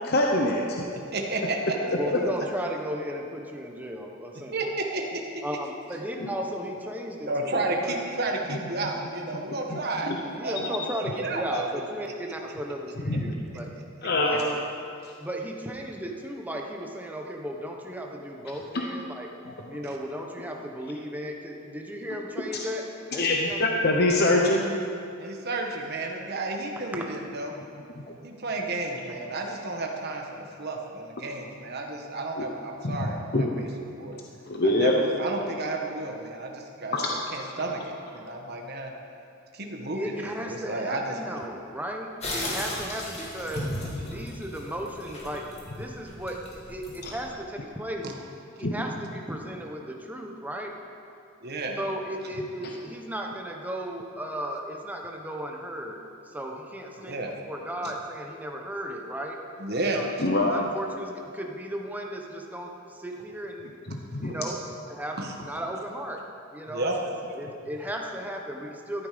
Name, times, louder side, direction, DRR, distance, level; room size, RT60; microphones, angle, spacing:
voice 1, 0.0-0.6 1.9-2.2 6.2-6.3 9.7-10.2 13.0-13.3 14.0-14.4 18.7-18.8 19.5-19.6 23.1-24.7 32.4-32.5 32.8-33.5 34.5-34.9 36.9-37.1 47.0-47.1 48.6-48.8 60.2-60.6 63.9-64.3, left 2 dB, 50° left, 0 dB, 1.0 m, -24 dB
voice 2, 1.1-1.8 4.5-5.4 7.3-10.1 10.4-11.6 19.8-20.0 25.2-27.5 28.2-33.7 34.0-34.2 34.6-37.8 38.1-38.9 39.5-41.2 48.0-48.1 51.4-51.8 57.0-57.3 57.8-57.9 59.6-60.0 65.2-65.3 66.7-67.0, right 2 dB, 50° right, 1 dB, 1.6 m, -32 dB
voice 3, 1.9-4.5 5.4-8.0 10.3-13.7 14.2-14.6 15.2-19.3 19.7-22.8 23.1-23.2 23.5-23.7 26.9-27.0 39.9-43.6 44.1-45.4 45.7-48.1 48.6-50.7 51.8-57.2 57.5-59.4 59.9-63.7 64.2-64.6 64.9-65.2 65.4-66.2 66.5-66.9 67.3-69.1, equal, 10° right, 1 dB, 1.2 m, -35 dB
sound 1, 42.2-47.3, left 1 dB, 30° left, 2.5 m, -36 dB
13.0 x 12.0 x 5.3 m, 2.6 s
head